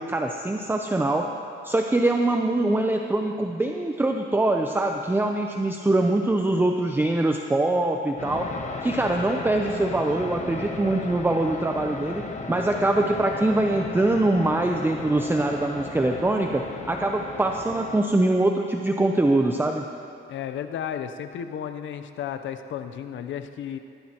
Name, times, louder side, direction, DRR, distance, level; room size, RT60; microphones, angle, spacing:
voice 1, 0.0-1.3 1.6-8.5 8.8-19.8, right 2 dB, 10° right, 3 dB, 0.6 m, -23 dB
sound 1, 8.2-18.0, left 3 dB, 35° left, 1.1 m, -35 dB
voice 2, 20.3-23.8, left 9 dB, 70° left, 9 dB, 0.8 m, -33 dB
18.0 x 14.0 x 3.0 m, 2.4 s
cardioid pair, 90°, 20 cm